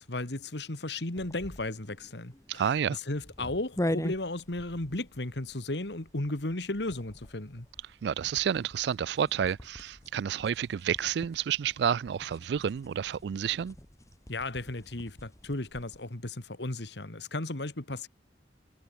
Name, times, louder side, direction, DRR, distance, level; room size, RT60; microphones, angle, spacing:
voice 1, 0.0-7.7 14.3-18.1, left 2 dB, 65° left, 2.1 m, -35 dB
sound 1, 1.1-16.1, left 1 dB, 15° left, 1.6 m, -42 dB
voice 2, 2.5-3.0 8.0-13.8, right 8 dB, 65° right, 0.3 m, -30 dB
head